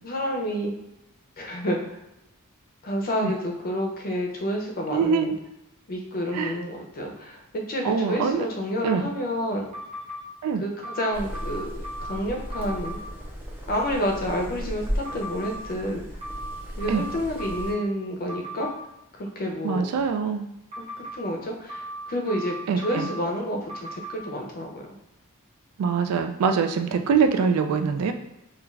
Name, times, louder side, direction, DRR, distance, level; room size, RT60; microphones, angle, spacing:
voice 1, 0.0-0.7 1.4-2.0 2.8-5.3 5.9-9.7 10.6-11.7 12.0-13.0 13.7-16.0 16.8-18.7 19.1-19.9 20.8-24.8, equal, 40° left, 1 dB, 0.5 m, -29 dB
voice 2, 4.9-5.4 6.3-6.5 7.8-8.5 8.8-9.1 10.4-10.6 16.9-17.0 19.6-20.5 22.7-23.1 25.8-28.1, right 5 dB, 85° right, 7 dB, 0.3 m, -24 dB
sound 1, 9.7-10.2 10.8-12.2 12.5-13.0 15.1-15.6 16.2-17.8 18.3-18.7 20.7-21.2 21.7-23.2 23.7-24.2, right 1 dB, 30° right, 0.7 m, -37 dB
sound 2, 11.1-17.7, equal, 10° right, 0.4 m, -35 dB
2.3 x 2.3 x 3.1 m, 0.90 s
head